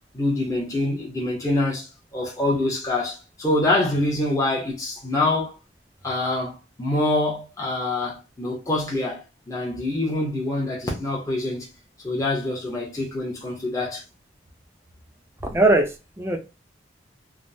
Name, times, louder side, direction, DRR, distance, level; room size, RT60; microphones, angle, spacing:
voice 1, 0.1-5.5 6.0-11.7 12.0-14.0, left 2 dB, 15° left, 0.7 m, -25 dB
voice 2, 15.4-16.4, right 2 dB, 15° right, 0.4 m, -20 dB
3.4 x 2.0 x 2.5 m
head